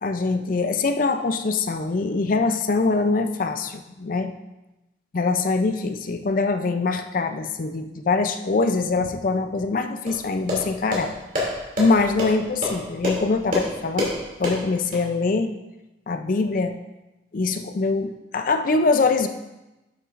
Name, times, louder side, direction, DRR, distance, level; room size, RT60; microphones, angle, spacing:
voice 1, 0.0-4.3 5.1-11.1 11.8-14.1 14.4-15.5 16.1-16.8 17.3-19.3, left 3 dB, 45° left, 8 dB, 0.4 m, -23 dB
sound 1, 10.1-15.0, left 1 dB, 45° right, 2.6 m, -28 dB
11.5 x 6.8 x 2.5 m, 1.0 s
head